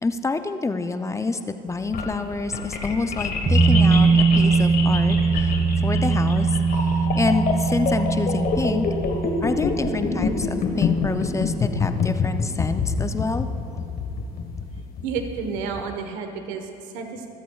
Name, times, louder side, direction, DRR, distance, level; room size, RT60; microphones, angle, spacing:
voice 1, 0.0-5.5 5.8-8.8 9.4-13.5, left 3 dB, 15° left, 9 dB, 0.6 m, -27 dB
sound 1, 1.7-15.8, left 5 dB, 45° left, 1.4 m, -26 dB
sound 2, 3.5-12.6 12.9-13.0, right 4 dB, 30° right, 1.4 m, -21 dB
voice 2, 15.0-17.3, right 5 dB, 75° right, 5 dB, 1.3 m, -31 dB
24.5 x 8.2 x 2.4 m, 2.9 s
supercardioid pair, 90°, 21 cm